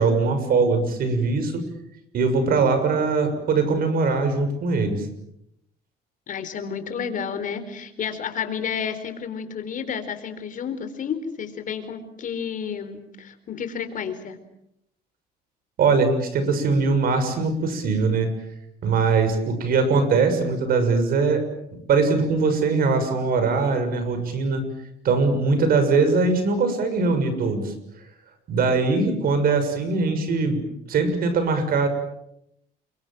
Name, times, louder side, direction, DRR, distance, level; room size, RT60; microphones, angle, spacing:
voice 1, 0.0-1.6 2.1-5.1 15.8-18.3 18.8-21.4 21.9-24.7 25.0-27.7 28.5-30.6 30.9-31.9, right 4 dB, 60° right, 9 dB, 6.9 m, -21 dB
voice 2, 6.3-14.4, left 7 dB, 50° left, 9 dB, 4.3 m, -31 dB
29.5 x 24.0 x 7.6 m, 0.79 s
cardioid pair, 110°, 17 cm